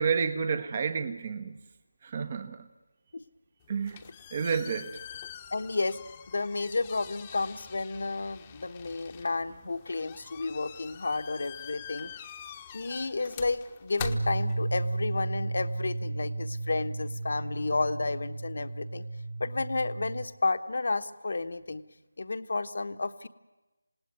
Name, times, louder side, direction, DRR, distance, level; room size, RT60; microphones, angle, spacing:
voice 1, 0.0-1.6 2.0-2.7 3.7-4.0 4.3-5.0, right 6 dB, 30° right, 10 dB, 1.2 m, -30 dB
sound 1, 3.6-15.1, left 9 dB, 20° left, 1.1 m, -46 dB
voice 2, 5.5-6.0 6.3-12.1 12.7-19.0 19.4-21.8 22.2-23.3, left 3 dB, 55° left, 10 dB, 1.2 m, -31 dB
sound 2, 14.0-20.2, right 2 dB, 65° right, 6.4 m, -33 dB
27.0 x 18.5 x 9.5 m, 1.1 s
figure-of-eight pair, 165°, 0 cm